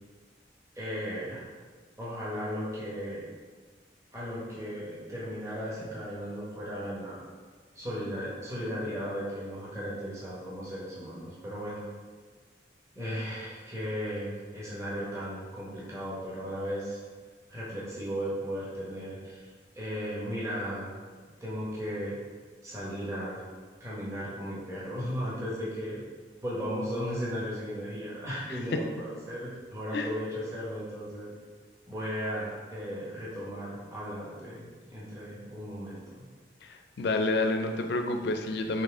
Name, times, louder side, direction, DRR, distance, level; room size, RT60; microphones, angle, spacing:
voice 1, 0.7-1.5 2.0-3.3 4.1-7.3 7.7-11.9 12.9-17.0 17.5-19.5 19.7-21.0 21.4-22.2 22.6-23.4 23.8-26.0 26.4-31.3 31.9-36.2, equal, 15° right, -7 dB, 0.9 m, -36 dB
voice 2, 28.5-28.8 29.9-30.1 36.6-38.8, left 2 dB, 65° left, 5 dB, 0.4 m, -29 dB
4.1 x 3.2 x 3.5 m, 1.5 s
head